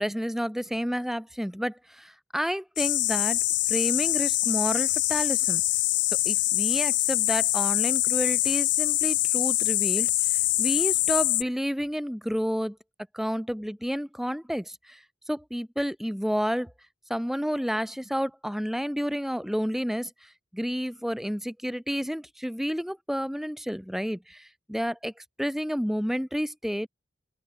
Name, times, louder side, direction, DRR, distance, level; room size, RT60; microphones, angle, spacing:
voice 1, 0.0-3.4 3.7-5.6 6.3-12.8 13.1-15.0 15.3-16.7 17.1-25.1 25.4-26.9, equal, ahead, 5.3 m, -30 dB
sound 1, 2.8-11.4, left 16 dB, 70° left, 1.0 m, -24 dB
open air
head